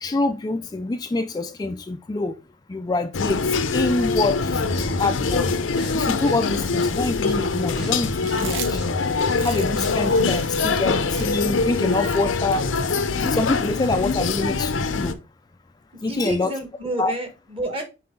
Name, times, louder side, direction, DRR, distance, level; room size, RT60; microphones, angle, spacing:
voice 1, 0.0-2.3 2.7-3.4 3.7-5.5 5.9-8.8 9.4-12.7 13.2-15.2 16.0-16.5 17.0-17.1, left 2 dB, 20° left, 0.3 m, -25 dB
sound 1, 3.1-15.1, left 4 dB, 85° left, 0.7 m, -23 dB
sound 2, 4.5-10.6, equal, 55° right, 3.5 m, -35 dB
Chewing mastication, 8.2-13.7, right 7 dB, 80° right, 0.9 m, -39 dB
voice 2, 16.1-17.8, right 1 dB, 30° right, 1.5 m, -29 dB
5.8 x 4.7 x 3.7 m
head